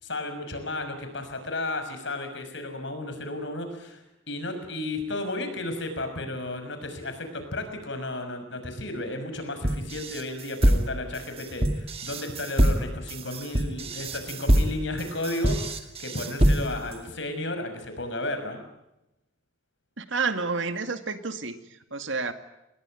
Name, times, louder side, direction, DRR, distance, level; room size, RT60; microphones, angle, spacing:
voice 1, 0.0-18.6, left 2 dB, 60° left, 8 dB, 6.1 m, -33 dB
sound 1, 9.6-16.9, equal, 30° right, 2.2 m, -24 dB
voice 2, 20.0-21.5 21.9-22.3, right 4 dB, 70° right, 9 dB, 2.2 m, -29 dB
29.0 x 20.5 x 9.1 m, 0.90 s
head